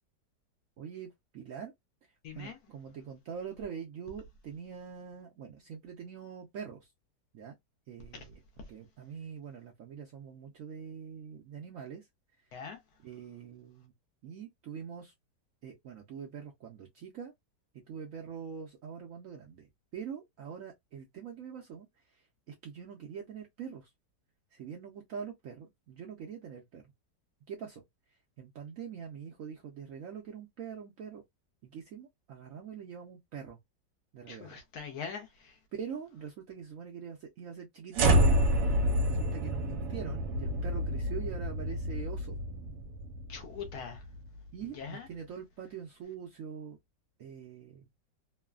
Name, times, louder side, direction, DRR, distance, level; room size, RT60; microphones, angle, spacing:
voice 1, 0.8-1.7 2.3-6.9 7.3-7.5 7.9-8.4 8.7-12.1 13.0-13.9 14.2-15.1 15.6-17.3 17.7-19.7 19.9-23.9 24.5-26.9 27.5-27.8 28.4-31.2 31.6-33.6 34.1-34.6 35.7-38.2 39.0-42.4 44.5-46.8 47.2-47.9, right 7 dB, 70° right, 0.8 m, -44 dB
voice 2, 2.2-2.6 8.1-8.3 12.5-12.8 34.3-35.6 43.3-44.0 44.7-45.1, left 6 dB, 70° left, 1.0 m, -42 dB
sound 1, 37.9-44.3, equal, 85° right, 1.3 m, -29 dB
3.1 x 2.1 x 2.3 m
omnidirectional pair, 1.9 m